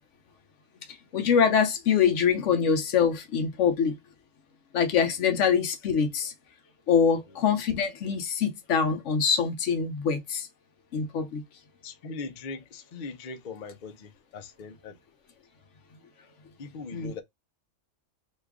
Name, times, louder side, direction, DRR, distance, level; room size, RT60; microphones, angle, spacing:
voice 1, 1.1-3.9 4.7-6.3 6.9-10.5 10.9-11.4 16.9-17.1, left 7 dB, 70° left, 1.0 m, -24 dB
voice 2, 11.8-15.0 16.6-17.2, left 4 dB, 50° left, 0.6 m, -40 dB
3.1 x 2.3 x 3.5 m
omnidirectional pair, 1.3 m